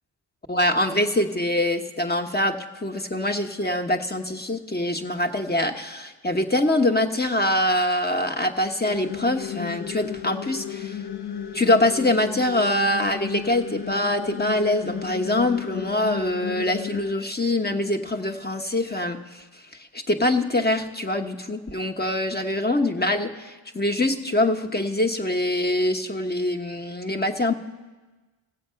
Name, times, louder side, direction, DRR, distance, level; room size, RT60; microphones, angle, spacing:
voice 1, 0.5-11.0 11.5-27.5, left 1 dB, 20° left, 5 dB, 1.1 m, -24 dB
sound 1, 8.9-17.1, left 9 dB, 50° left, 0.8 m, -34 dB
16.0 x 7.8 x 5.7 m, 1.2 s
cardioid pair, 50°, 50 cm